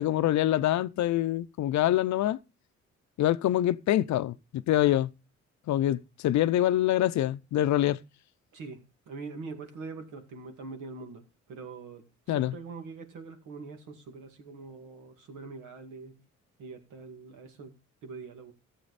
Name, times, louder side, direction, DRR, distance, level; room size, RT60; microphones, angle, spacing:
voice 1, 0.0-2.4 3.2-5.1 5.7-8.0 12.3-12.5, left 13 dB, 70° left, 0.6 m, -25 dB
voice 2, 9.1-11.2 11.5-12.0 12.3-16.1 16.6-17.7 18.0-18.5, right 4 dB, 85° right, 2.3 m, -43 dB
14.5 x 7.6 x 4.1 m
cardioid pair, 90°, 30 cm